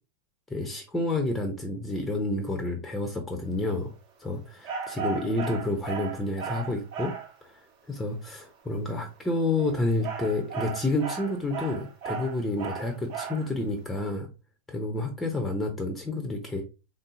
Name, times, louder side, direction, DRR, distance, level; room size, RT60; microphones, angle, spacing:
voice 1, 0.5-3.9 4.2-7.1 7.5-7.6 7.9-14.3 14.7-16.6, left 2 dB, 10° left, 4 dB, 0.6 m, -29 dB
sound 1, 4.6-7.3 9.4-13.5, right 6 dB, 45° right, 1.0 m, -35 dB
3.6 x 2.7 x 2.5 m, 0.29 s
figure-of-eight pair, 90°, 0 cm